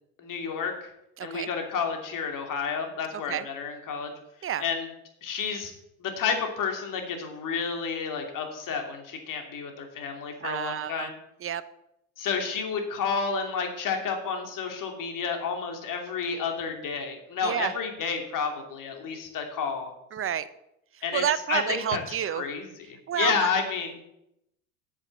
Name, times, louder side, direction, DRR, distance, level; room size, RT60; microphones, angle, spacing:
voice 1, 0.2-0.9 1.2-4.1 4.6-4.9 5.2-5.7 6.0-11.1 12.2-19.9 21.0-21.2 21.5-22.0 22.3-22.7 23.2-24.0, left 5 dB, 45° left, 4 dB, 3.0 m, -30 dB
voice 2, 1.2-1.5 3.3-3.5 4.4-4.6 10.4-11.1 11.4-11.6 17.4-17.7 20.1-20.5 20.9-22.4 23.1-23.5, right 9 dB, 30° right, 15 dB, 0.8 m, -29 dB
8.9 x 7.1 x 7.3 m, 0.81 s
hypercardioid pair, 80°, 42 cm